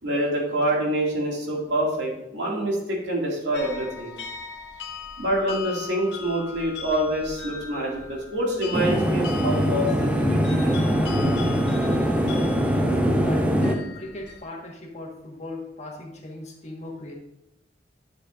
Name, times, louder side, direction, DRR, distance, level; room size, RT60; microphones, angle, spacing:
voice 1, 0.0-4.1 5.2-10.9, right 1 dB, 80° right, -2 dB, 2.3 m, -26 dB
sound 1, 3.5-14.4, left 5 dB, 70° left, 1.0 m, -40 dB
sound 2, 8.7-13.8, equal, 10° right, 0.6 m, -22 dB
voice 2, 12.9-17.1, left 2 dB, 40° left, -1 dB, 1.6 m, -37 dB
11.0 x 6.7 x 2.6 m, 0.89 s
head